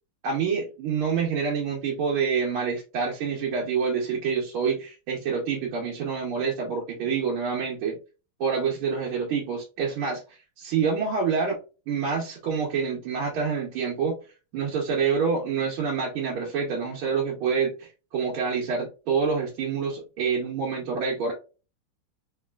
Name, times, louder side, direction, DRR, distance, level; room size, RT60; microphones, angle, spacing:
voice 1, 0.2-8.0 8.4-10.2 10.6-11.6 11.9-14.2 14.5-21.3, right 5 dB, 80° right, -3 dB, 1.7 m, -27 dB
4.1 x 2.9 x 2.3 m, 0.32 s
omnidirectional pair, 2.3 m